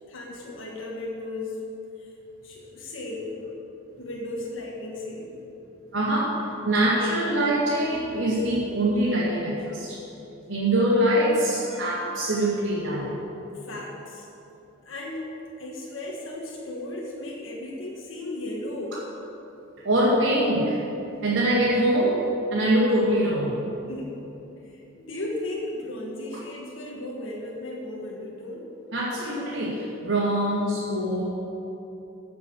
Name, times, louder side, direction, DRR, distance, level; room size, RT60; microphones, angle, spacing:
voice 1, 0.1-1.6 2.0-2.1 2.4-3.3 4.0-5.4 13.5-14.3 14.8-15.3 15.6-19.0 23.9-24.2 24.6-28.7, left 1 dB, 90° left, -2 dB, 1.6 m, -35 dB
voice 2, 5.9-6.3 6.6-10.0 10.5-13.1 19.8-20.8 21.2-22.2 22.5-23.6 28.9-31.2, right 1 dB, 65° right, -8 dB, 2.3 m, -23 dB
15.5 x 5.9 x 6.4 m, 2.9 s
head